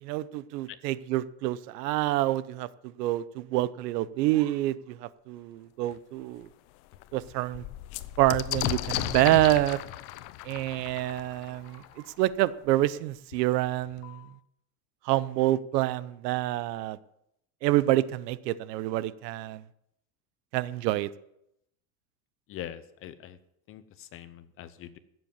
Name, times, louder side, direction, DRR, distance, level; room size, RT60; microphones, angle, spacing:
voice 1, 0.0-2.7 3.0-6.5 7.1-7.6 8.2-9.8 10.5-11.8 12.2-14.2 15.1-17.0 17.6-19.6 20.5-21.1, right 15 dB, 70° right, 17 dB, 0.9 m, -27 dB
sound 1, 5.9-6.0 6.4-6.5 6.8-12.4 13.3-13.4 13.7-14.3, left 15 dB, 60° left, 0.8 m, -35 dB
voice 2, 22.5-23.4 23.7-25.0, left 11 dB, 25° left, 14 dB, 0.7 m, -43 dB
15.0 x 7.9 x 7.3 m, 0.79 s
supercardioid pair, 150°, 50 cm